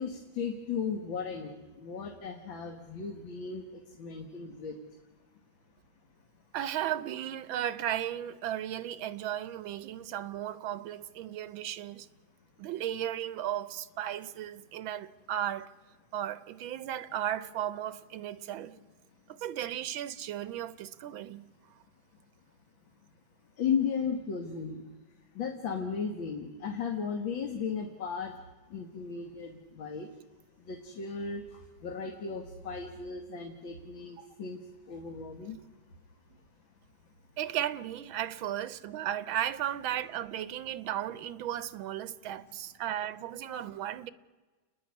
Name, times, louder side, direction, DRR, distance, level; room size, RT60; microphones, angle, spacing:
voice 1, 0.0-3.6 4.0-4.8 23.6-24.8 25.4-28.3 28.7-30.1 30.7-31.4 31.8-34.6 34.9-35.6, left 6 dB, 75° left, 2.3 m, -35 dB
voice 2, 6.5-12.1 12.6-15.7 16.1-18.8 19.3-21.5 34.2-34.3 37.4-44.1, right 11 dB, 90° right, 1.6 m, -35 dB
29.5 x 10.5 x 9.5 m
omnidirectional pair, 2.1 m